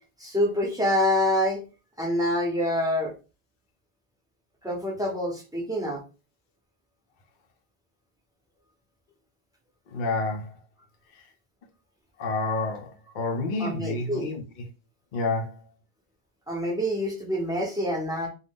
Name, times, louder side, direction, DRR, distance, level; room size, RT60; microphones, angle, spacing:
voice 1, 0.2-1.6 2.0-3.1 4.6-6.0 13.6-14.3 16.5-18.3, left 1 dB, 5° right, 0.7 m, -26 dB
voice 2, 9.9-10.6 11.1-11.3 12.2-14.6 15.1-15.6, left 3 dB, 55° left, 0.6 m, -29 dB
2.5 x 2.2 x 3.5 m
omnidirectional pair, 1.1 m